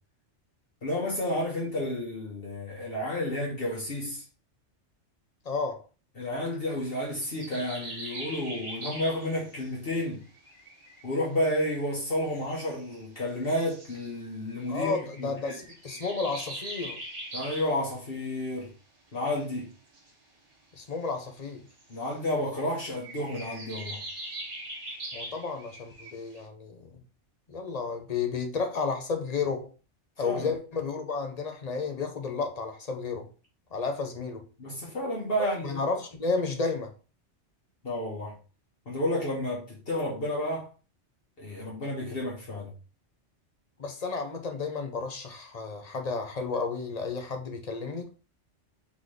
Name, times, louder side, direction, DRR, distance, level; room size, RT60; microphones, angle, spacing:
voice 1, 0.8-4.2 6.2-10.2 11.0-15.6 17.3-18.7 19.1-19.7 21.9-24.0 30.2-30.5 34.6-35.8 37.8-38.3 38.8-40.7 41.4-42.7, left 1 dB, 55° left, 1.5 m, -31 dB
voice 2, 5.4-5.8 14.7-17.0 20.7-21.6 25.1-27.0 27.5-29.7 30.2-33.3 33.7-34.4 35.4-36.9 43.8-48.1, left 4 dB, 40° left, 0.8 m, -32 dB
sound 1, 7.2-9.7 10.2-11.0 12.3-13.0 13.3-14.1 15.1-17.8 19.9-20.1 21.7-22.1 22.9-26.4, right 1 dB, 70° right, 1.5 m, -41 dB
3.9 x 3.8 x 3.2 m
omnidirectional pair, 1.2 m